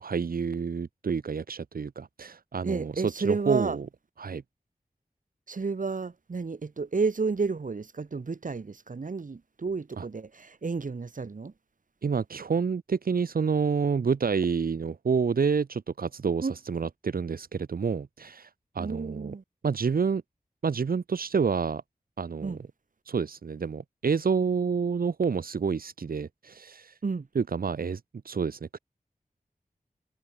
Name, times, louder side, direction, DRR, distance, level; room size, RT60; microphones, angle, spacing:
voice 1, 0.0-3.9 4.2-4.4 10.0-10.1 12.0-18.5 18.7-19.3 19.6-20.2 20.6-21.8 22.2-22.6 23.1-27.0 27.3-28.8, right 5 dB, 80° right, 0.9 m, -28 dB
voice 2, 2.6-3.8 5.5-11.5 16.4-16.5 18.8-19.4 22.4-22.6 27.0-27.3, right 4 dB, 60° right, 1.5 m, -31 dB
wide cardioid pair, 75°, 15 cm